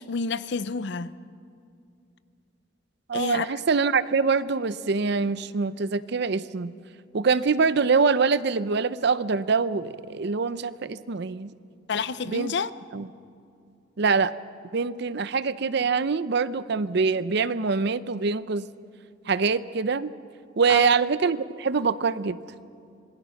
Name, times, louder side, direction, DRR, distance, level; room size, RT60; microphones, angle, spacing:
voice 1, 0.1-1.1 3.1-3.5 11.9-12.7 20.7-20.9, left 5 dB, 65° left, 0.6 m, -28 dB
voice 2, 3.1-6.7 7.1-11.5 12.3-12.5 12.9-13.1 14.0-14.3 14.7-18.7 19.3-20.1 20.6-22.4, right 5 dB, 60° right, 0.6 m, -24 dB
27.0 x 20.0 x 5.8 m
head